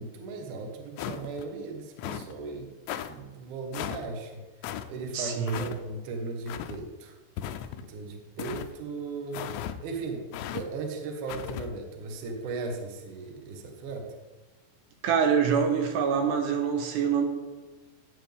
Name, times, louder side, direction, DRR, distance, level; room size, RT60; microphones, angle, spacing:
voice 1, 0.0-2.7 3.0-4.4 4.9-7.1 7.8-9.5 9.8-14.1, right 3 dB, 60° right, 3 dB, 2.4 m, -37 dB
sound 1, 1.0-1.5 2.0-2.3 2.9-3.1 3.7-4.0 4.6-4.9 5.5-5.8 6.5-6.8 7.4-7.9 8.4-8.7 9.3-9.8 10.3-10.6 11.3-11.7, left 10 dB, 80° left, 2.8 m, -36 dB
voice 2, 5.1-5.7 15.0-17.2, right 7 dB, 75° right, 3 dB, 3.1 m, -25 dB
16.5 x 8.8 x 3.5 m, 1.2 s
omnidirectional pair, 5.1 m